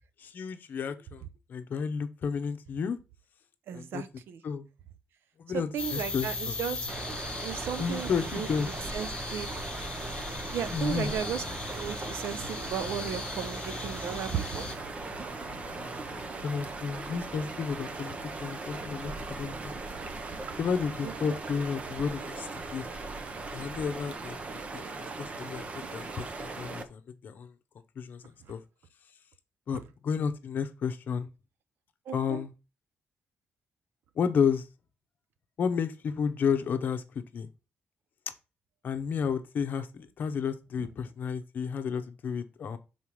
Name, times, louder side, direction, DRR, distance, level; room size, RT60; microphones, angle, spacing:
voice 1, 0.2-1.2 1.5-3.0 3.7-4.0 4.4-4.7 5.4-6.6 7.8-8.7 10.7-11.1 16.4-19.7 20.6-22.9 23.5-27.5 28.0-28.2 28.5-28.6 29.7-31.3 32.1-32.5 34.1-34.7 35.6-37.5 38.8-42.8, left 6 dB, 55° left, 0.8 m, -32 dB
voice 2, 3.7-4.4 5.5-6.9 7.4-8.5 8.9-9.5 10.5-11.4 11.7-14.7 21.0-21.4 32.1-32.4, right 8 dB, 80° right, 0.7 m, -35 dB
sound 1, 5.8-14.7, left 3 dB, 25° left, 1.4 m, -38 dB
sound 2, 6.9-26.8, right 3 dB, 35° right, 0.8 m, -39 dB
sound 3, 10.6-16.3, left 1 dB, ahead, 1.4 m, -49 dB
5.7 x 4.0 x 4.8 m
cardioid pair, 140°, 4 cm